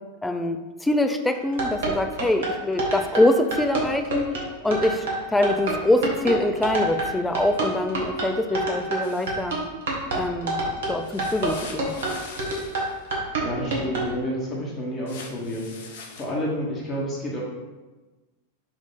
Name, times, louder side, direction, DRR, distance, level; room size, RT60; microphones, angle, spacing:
voice 1, 0.2-4.3 4.6-9.6 10.1-10.6 10.9-11.9, left 1 dB, 5° left, 7 dB, 0.3 m, -24 dB
sound 1, 1.3-14.1, right 2 dB, 60° right, 1.0 m, -27 dB
sound 2, 9.0-9.4 11.0-12.9 15.1-16.2, left 4 dB, 55° left, 0.6 m, -42 dB
voice 2, 13.4-17.4, equal, 25° left, -3 dB, 1.2 m, -30 dB
4.4 x 2.7 x 4.1 m, 1.2 s
figure-of-eight pair, 90°, 0 cm